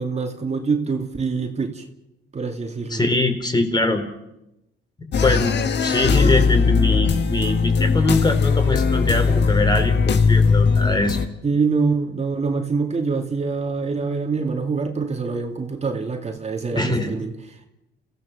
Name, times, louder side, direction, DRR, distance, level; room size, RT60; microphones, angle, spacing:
voice 1, 0.0-1.8 2.3-3.0 11.4-17.7, right 4 dB, 35° right, 4 dB, 2.5 m, -25 dB
voice 2, 2.9-4.1 5.2-11.2 16.7-17.1, left 2 dB, 20° left, 6 dB, 3.5 m, -22 dB
sound 1, 5.1-11.3, left 5 dB, 60° left, 1.5 m, -19 dB
30.0 x 15.5 x 6.6 m, 0.89 s
cardioid pair, 90°, 20 cm